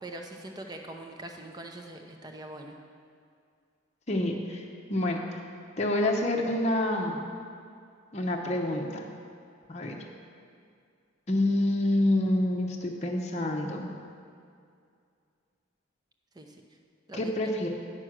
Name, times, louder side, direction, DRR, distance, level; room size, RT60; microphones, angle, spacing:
voice 1, 0.0-2.8 16.3-16.6 17.1-17.3, right 1 dB, 20° right, 3 dB, 0.7 m, -42 dB
voice 2, 4.1-5.4 5.8-7.3 8.1-9.1 9.7-9.9 11.3-13.9 17.2-17.7, left 1 dB, 35° left, 0 dB, 0.7 m, -27 dB
9.0 x 6.1 x 6.1 m, 2.3 s
head